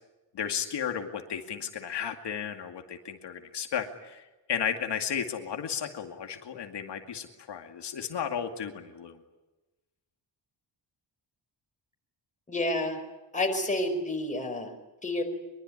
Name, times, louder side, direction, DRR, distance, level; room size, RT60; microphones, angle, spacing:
voice 1, 0.3-9.2, left 8 dB, 65° left, 4 dB, 2.4 m, -34 dB
voice 2, 12.5-13.0 13.3-14.7 15.0-15.2, left 1 dB, 15° left, 4 dB, 4.7 m, -29 dB
24.0 x 23.5 x 9.8 m, 1.1 s
wide cardioid pair, 175°, 44 cm